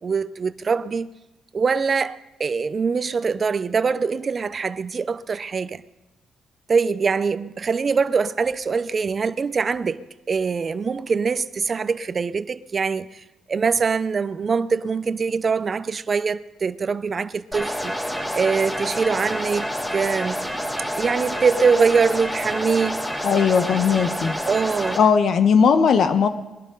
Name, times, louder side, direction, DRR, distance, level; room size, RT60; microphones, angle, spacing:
voice 1, 0.0-1.1 1.5-5.8 6.7-17.9 18.3-20.5 20.9-23.0 24.5-25.0, right 5 dB, 40° right, 0.6 m, -23 dB
sound 1, 17.5-25.0, equal, 10° left, 4.4 m, -28 dB
voice 2, 23.2-24.3 25.0-26.3, left 6 dB, 60° left, 1.2 m, -18 dB
21.5 x 12.0 x 3.9 m
cardioid pair, 90°, 0 cm